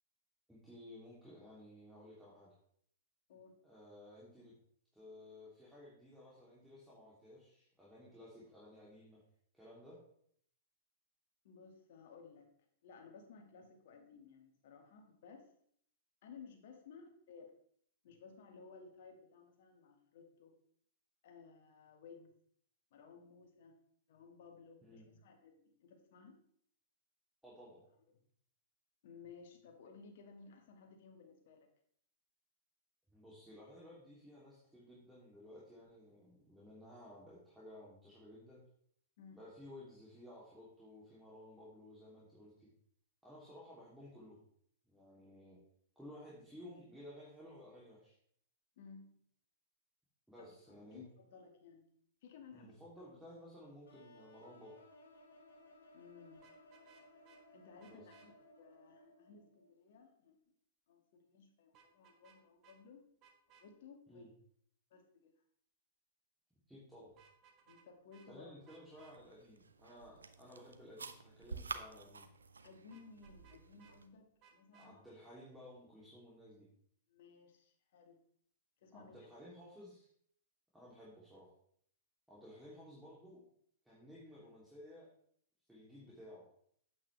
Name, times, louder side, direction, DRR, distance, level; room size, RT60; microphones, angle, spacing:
voice 1, 0.5-2.5 3.6-4.5 4.9-9.2 9.5-10.0 24.8-25.1 27.4-27.9 33.1-38.6 39.3-42.7 43.2-44.4 44.8-45.6 45.9-48.1 50.3-51.1 52.5-54.7 57.8-58.1 64.1-64.3 66.7-67.2 68.3-72.3 74.7-76.7 78.9-80.1 80.7-81.5 82.3-83.4 83.8-85.1 85.7-86.5, left 1 dB, 5° right, -7 dB, 3.0 m, -55 dB
voice 2, 11.4-12.5 12.8-15.5 16.2-17.5 18.0-20.5 21.2-22.4 22.9-23.8 24.1-26.4 29.0-31.7 39.2-39.4 48.8-49.2 50.4-51.9 52.2-52.7 55.9-56.4 57.5-60.4 60.9-63.0 63.6-64.3 64.9-65.3 67.7-68.5 72.6-75.0 77.1-78.2 78.8-79.3, left 5 dB, 60° left, 3 dB, 2.0 m, -57 dB
sound 1, 53.9-59.7, left 1 dB, 75° left, 2.7 m, -62 dB
Vehicle horn car horn honking, 56.3-57.4 57.8-58.3 61.7-62.4 62.6-62.8 63.2-63.7 67.1-67.9 68.1-68.3 68.7-69.1 72.9-74.0 74.4-74.9, right 6 dB, 40° right, 1.5 m, -65 dB
sound 2, 68.9-74.1, right 4 dB, 90° right, 0.7 m, -50 dB
8.6 x 8.4 x 3.4 m, 0.65 s
hypercardioid pair, 110°, 0 cm